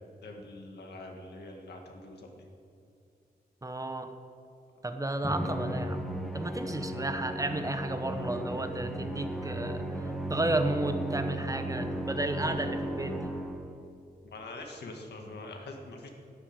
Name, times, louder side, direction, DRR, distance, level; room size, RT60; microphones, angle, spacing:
voice 1, 0.2-2.3 14.2-16.1, left 2 dB, 90° left, 2 dB, 1.9 m, -44 dB
voice 2, 3.6-4.1 4.8-6.0 6.3-9.9 10.3-13.3, right 2 dB, 20° right, 7 dB, 0.9 m, -32 dB
Musical instrument, 5.2-13.8, right 1 dB, ahead, 1.6 m, -35 dB
12.5 x 8.5 x 8.9 m, 2.5 s
wide cardioid pair, 100°, 17 cm